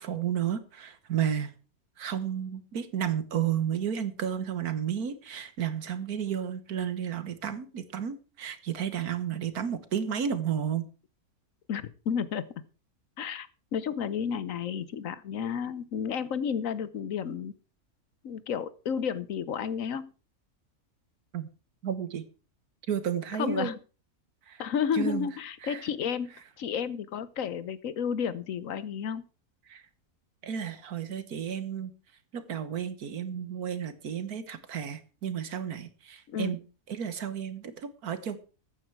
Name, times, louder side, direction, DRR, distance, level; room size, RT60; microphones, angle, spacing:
voice 1, 0.0-1.5 2.0-10.9 21.3-21.5 21.8-22.3 22.9-23.7 24.5-24.6 24.9-25.3 25.6-25.8 29.7-29.8 30.4-31.9 32.3-36.6 36.9-38.4, right 8 dB, 85° right, 12 dB, 1.7 m, -32 dB
voice 2, 11.7-12.4 13.2-17.5 18.2-20.1 23.3-23.7 24.6-26.3 26.6-29.2 36.3-36.6, left 7 dB, 65° left, 16 dB, 1.2 m, -32 dB
14.0 x 9.2 x 4.7 m, 0.35 s
omnidirectional pair, 1.6 m